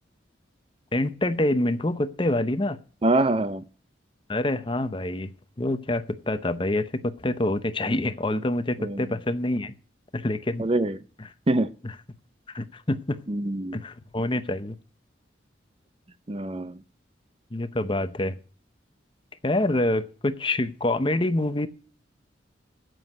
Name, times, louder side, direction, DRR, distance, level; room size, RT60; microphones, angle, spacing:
voice 1, 0.9-2.8 4.3-5.3 5.6-9.7 10.1-10.6 11.2-11.3 11.8-11.9 12.5-13.2 13.7-14.8 17.5-18.4 19.4-21.7, left 1 dB, 25° left, 0.8 m, -26 dB
voice 2, 3.0-3.6 8.8-9.0 10.6-11.0 11.5-11.7 13.3-13.8 16.3-16.8, right 2 dB, 30° right, 0.5 m, -24 dB
9.6 x 7.9 x 9.0 m
head